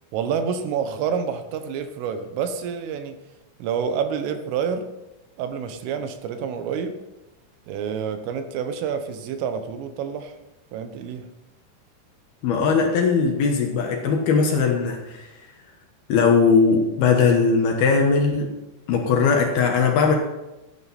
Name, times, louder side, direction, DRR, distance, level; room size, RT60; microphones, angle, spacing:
voice 1, 0.1-3.2 3.6-4.9 5.4-7.0 7.7-10.3 10.7-11.3, right 7 dB, 85° right, 8 dB, 3.8 m, -28 dB
voice 2, 12.4-15.3 16.1-18.5 18.9-20.2, left 5 dB, 65° left, 2 dB, 2.7 m, -19 dB
16.5 x 10.5 x 4.3 m, 0.98 s
omnidirectional pair, 5.7 m